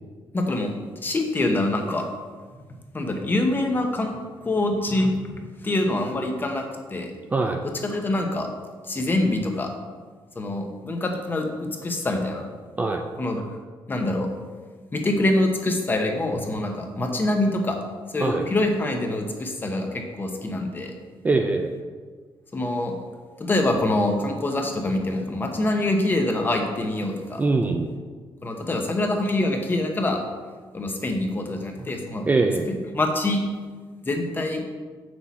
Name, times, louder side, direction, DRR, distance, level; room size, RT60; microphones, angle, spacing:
voice 1, 0.3-0.7 1.0-2.0 2.9-7.1 7.8-8.5 8.9-9.7 10.4-12.5 13.2-13.5 13.9-14.3 14.9-17.8 18.1-20.9 22.5-22.9 23.4-27.4 28.4-30.2 30.7-32.3 32.7-33.4 34.0-34.6, left 2 dB, 20° left, 3 dB, 0.9 m, -25 dB
voice 2, 21.2-21.7 27.4-27.9 32.3-32.7, right 3 dB, 20° right, 4 dB, 0.4 m, -22 dB
7.8 x 6.2 x 4.2 m, 1.5 s
cardioid pair, 150°, 9 cm